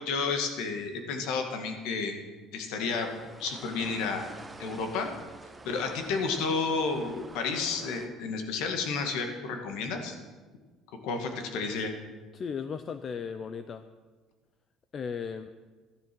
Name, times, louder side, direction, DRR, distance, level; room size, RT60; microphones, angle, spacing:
voice 1, 0.0-2.2 2.5-3.1 3.4-4.3 4.6-5.1 5.6-10.2 11.0-11.9, left 4 dB, 75° left, 5 dB, 1.9 m, -31 dB
sound 1, 2.9-8.1, right 2 dB, 10° right, 0.9 m, -47 dB
voice 2, 12.3-13.9 14.9-15.5, left 6 dB, 30° left, 11 dB, 0.5 m, -36 dB
13.0 x 11.0 x 6.1 m, 1.4 s
cardioid pair, 155°, 0 cm